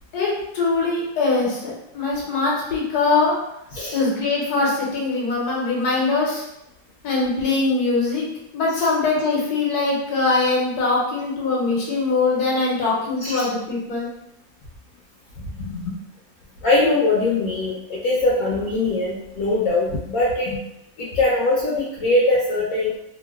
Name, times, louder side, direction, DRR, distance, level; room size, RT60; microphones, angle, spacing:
voice 1, 0.1-3.3 3.9-6.4 7.0-8.3 8.5-14.1 15.6-15.9 20.5-20.6, left 3 dB, 85° left, -4 dB, 1.4 m, -22 dB
voice 2, 16.6-20.5 21.0-22.9, left 2 dB, 70° left, -6 dB, 1.0 m, -21 dB
3.0 x 2.5 x 2.3 m, 0.85 s
omnidirectional pair, 1.6 m